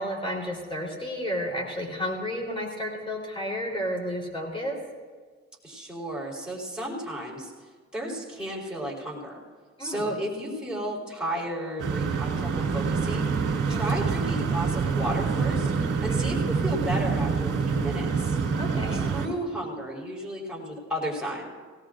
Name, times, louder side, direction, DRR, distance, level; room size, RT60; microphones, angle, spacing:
voice 1, 0.0-4.8 9.8-10.2 13.7-14.0 16.1-16.3 18.6-19.1, equal, 15° left, -1 dB, 3.8 m, -32 dB
voice 2, 5.6-7.5 7.9-9.4 9.8-13.3 13.7-15.7 16.0-18.4 18.9-21.5, equal, 5° right, -4 dB, 4.2 m, -33 dB
sound 1, 11.8-19.3, right 5 dB, 55° right, 2.9 m, -26 dB
18.0 x 18.0 x 2.6 m, 1.5 s
cardioid pair, 90°, 30 cm